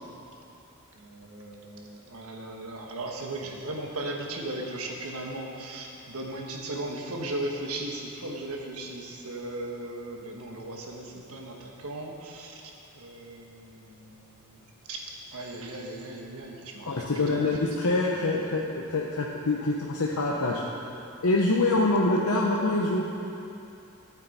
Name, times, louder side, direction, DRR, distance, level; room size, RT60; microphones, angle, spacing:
voice 1, 1.0-12.5 13.0-14.2 14.9-15.0 15.3-17.1 17.4-17.5, right 1 dB, 75° right, 1 dB, 1.3 m, -37 dB
voice 2, 16.9-20.6 21.2-23.0, left 2 dB, 75° left, -3 dB, 0.8 m, -25 dB
12.0 x 8.6 x 4.2 m, 2.7 s
head